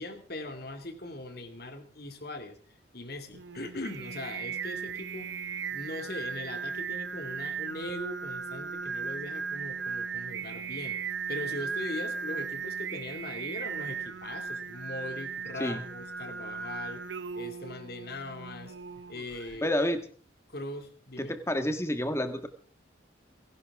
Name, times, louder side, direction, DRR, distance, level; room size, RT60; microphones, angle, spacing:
voice 1, 0.0-2.6 2.9-5.3 5.7-11.0 11.3-17.0 17.3-18.7 19.1-19.7 20.5-21.3, left 2 dB, 55° left, 7 dB, 2.4 m, -40 dB
Singing, 3.3-19.6, right 6 dB, 70° right, 0.9 m, -37 dB
voice 2, 19.6-20.0 21.2-22.5, left 1 dB, 15° left, 8 dB, 1.5 m, -29 dB
29.5 x 11.5 x 3.6 m, 0.43 s
head